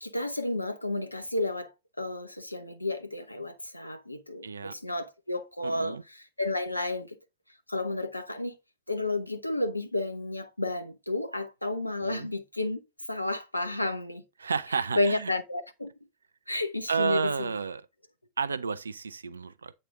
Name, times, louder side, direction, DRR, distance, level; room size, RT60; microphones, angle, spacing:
voice 1, 0.0-6.0 6.4-7.1 7.7-8.6 8.9-12.8 13.1-14.2 15.0-15.9 16.5-17.5, left 2 dB, 85° left, 0.9 m, -31 dB
voice 2, 4.4-4.8 5.6-6.0 12.0-12.3 14.4-15.3 16.9-17.9 18.4-19.7, right 5 dB, 75° right, 0.5 m, -31 dB
8.4 x 4.3 x 3.6 m
figure-of-eight pair, 90°, 0 cm